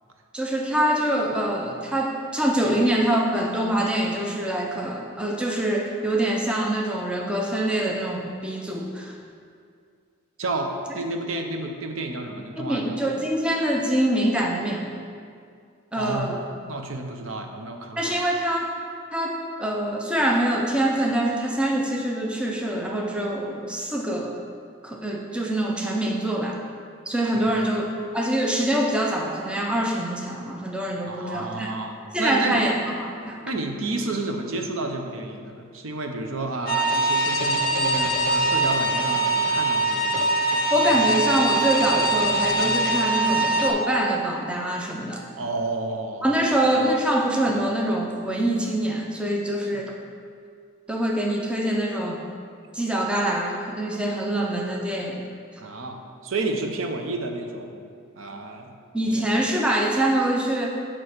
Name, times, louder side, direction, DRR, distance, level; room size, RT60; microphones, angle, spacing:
voice 1, 0.3-9.2 12.5-14.9 15.9-16.4 18.0-18.7 19.1-24.4 24.8-26.6 27.1-27.9 28.1-31.7 32.1-33.4 40.7-45.2 46.2-49.9 50.9-52.2 52.7-55.2 55.5-55.6 58.9-60.7, right 1 dB, 5° right, 0 dB, 0.5 m, -24 dB
voice 2, 10.4-13.0 15.9-16.3 16.7-18.2 27.3-27.7 31.0-32.6 33.5-40.2 45.4-46.5 55.6-57.8 58.2-58.7 59.1-59.3, right 2 dB, 70° right, 4 dB, 0.7 m, -31 dB
sound 1, 36.7-43.7, right 2 dB, 45° left, 0.7 m, -22 dB
8.6 x 3.0 x 6.5 m, 2.2 s
head